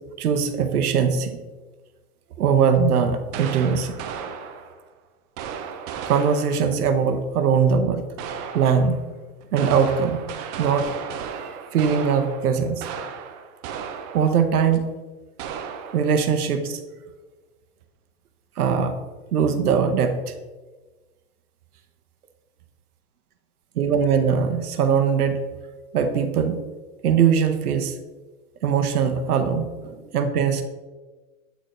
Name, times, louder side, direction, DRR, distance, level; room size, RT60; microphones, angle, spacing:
voice 1, 0.2-1.3 2.4-4.0 6.1-8.0 8.5-9.0 9.5-10.3 10.6-10.9 11.3-12.8 14.1-14.8 15.9-16.8 18.6-19.0 19.3-20.3 23.8-25.4 25.9-26.6 27.0-28.0 28.6-30.6, right 6 dB, 85° right, 8 dB, 0.8 m, -21 dB
sound 1, 3.3-4.9 5.4-6.8 8.2-9.0 9.4-14.5 14.7-14.8 15.4-16.2, right 7 dB, 30° right, 0.4 m, -35 dB
8.0 x 4.3 x 3.0 m, 1.3 s
hypercardioid pair, 120°, 44 cm